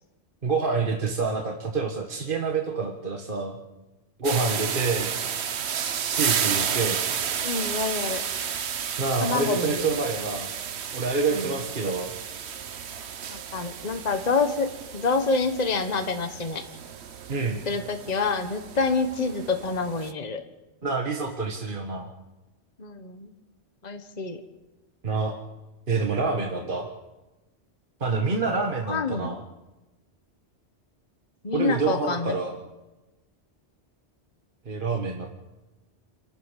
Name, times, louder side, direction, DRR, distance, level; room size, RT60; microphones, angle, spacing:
voice 1, 0.4-3.6 4.2-5.1 6.1-7.0 9.0-10.5 10.9-12.1 17.3-17.6 20.8-22.1 25.0-25.4 25.9-26.9 28.0-29.4 31.5-32.5 34.7-35.3, right 4 dB, 50° right, 2 dB, 1.8 m, -27 dB
sound 1, 4.2-20.1, right 8 dB, 70° right, 1.2 m, -32 dB
voice 2, 7.4-8.2 9.2-10.0 11.3-11.6 13.3-16.6 17.7-20.4 22.8-23.3 23.8-24.4 28.9-29.3 31.4-32.4, left 4 dB, 40° left, 7 dB, 1.4 m, -27 dB
29.0 x 12.5 x 7.5 m, 1.1 s
omnidirectional pair, 1.1 m